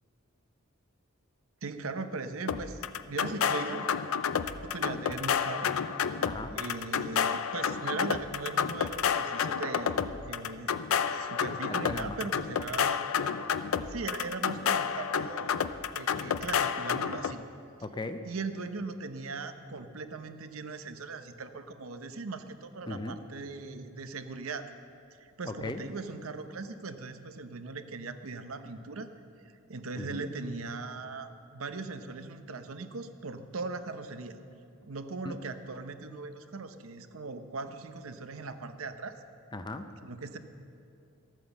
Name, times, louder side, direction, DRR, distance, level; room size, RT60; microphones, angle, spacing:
voice 1, 1.6-2.8 3.1-4.0 4.6-5.8 6.1-6.2 6.5-10.0 10.2-10.7 11.1-13.0 13.3-13.5 13.9-17.4 18.2-24.7 25.2-29.1 29.4-34.4 34.8-39.2 40.0-40.4, right 3 dB, 85° right, 9 dB, 0.8 m, -39 dB
sound 1, 2.5-17.3, left 7 dB, 85° left, 0.5 m, -30 dB
voice 2, 6.2-6.6 11.7-12.2 17.8-18.2 22.9-23.2 25.5-25.8 30.0-30.3 35.2-35.4 39.5-39.9, left 2 dB, 20° left, 8 dB, 0.5 m, -37 dB
13.5 x 9.1 x 7.1 m, 2.5 s
head